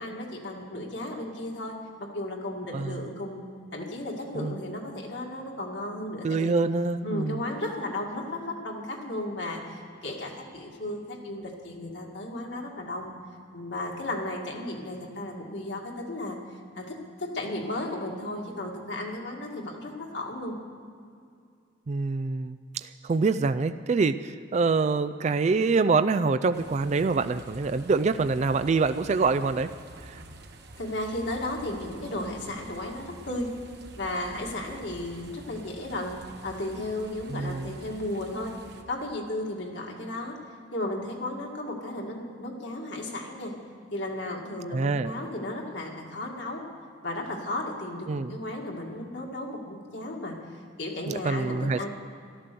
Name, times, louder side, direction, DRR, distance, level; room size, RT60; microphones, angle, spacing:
voice 1, 0.0-3.4 3.7-6.5 7.0-13.1 13.5-16.4 16.8-20.6 30.8-33.5 34.0-36.2 36.4-38.6 38.9-40.4 40.7-43.5 43.9-46.6 47.0-51.9, left 1 dB, 65° left, 0 dB, 2.1 m, -34 dB
voice 2, 6.2-7.4 21.9-29.7 30.1-30.2 37.3-37.8 44.7-45.1 48.1-48.4 51.1-51.9, right 4 dB, 35° right, 11 dB, 0.3 m, -26 dB
sound 1, 26.5-38.8, right 2 dB, 60° right, 1.2 m, -48 dB
13.5 x 12.5 x 6.8 m, 2.3 s
head